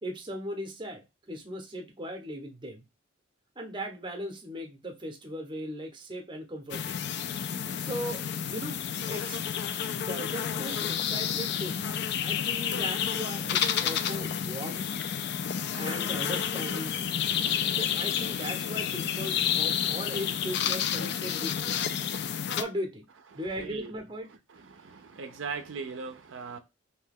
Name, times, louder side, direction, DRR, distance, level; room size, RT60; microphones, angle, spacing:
voice 1, 0.0-2.8 3.6-7.0 7.8-8.2 8.5-8.8 9.1-9.4 9.9-14.9 15.8-17.1 17.7-21.7 22.5-23.0 23.3-24.3, equal, 25° right, 0.6 m, -38 dB
sound 1, 6.7-22.6, left 8 dB, 55° left, 0.3 m, -30 dB
voice 2, 23.6-23.9 24.5-26.6, right 5 dB, 70° right, 0.5 m, -39 dB
2.7 x 2.2 x 3.4 m
head